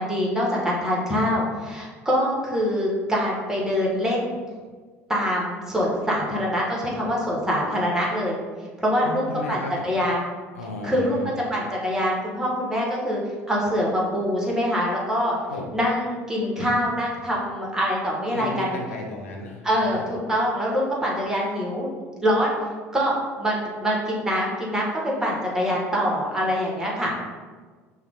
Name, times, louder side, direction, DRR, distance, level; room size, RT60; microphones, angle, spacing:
voice 1, 0.0-4.4 5.1-8.3 8.8-10.3 10.8-11.2 11.5-13.2 13.5-15.3 15.7-18.8 19.6-21.9 22.2-22.5 22.9-27.1, equal, 10° right, -4 dB, 1.5 m, -24 dB
voice 2, 9.0-9.9 10.5-11.3 15.5-15.7 18.3-20.0 27.0-27.1, left 2 dB, 90° left, 0 dB, 0.7 m, -34 dB
5.6 x 2.4 x 3.7 m, 1.5 s
hypercardioid pair, 70°, 7 cm